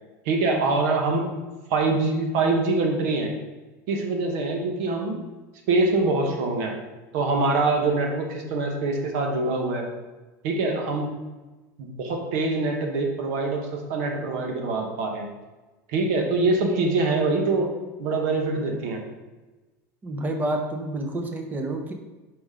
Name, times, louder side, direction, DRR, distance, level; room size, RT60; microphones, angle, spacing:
voice 1, 0.2-1.3 1.7-3.3 3.9-5.2 5.7-6.8 7.1-9.9 10.4-11.1 11.8-15.3 15.9-17.7 18.0-19.0, right 3 dB, 70° right, 2 dB, 1.2 m, -24 dB
voice 2, 20.0-21.9, right 1 dB, 20° right, 4 dB, 0.9 m, -29 dB
5.4 x 5.0 x 3.7 m, 1.2 s
supercardioid pair, 125°, 9 cm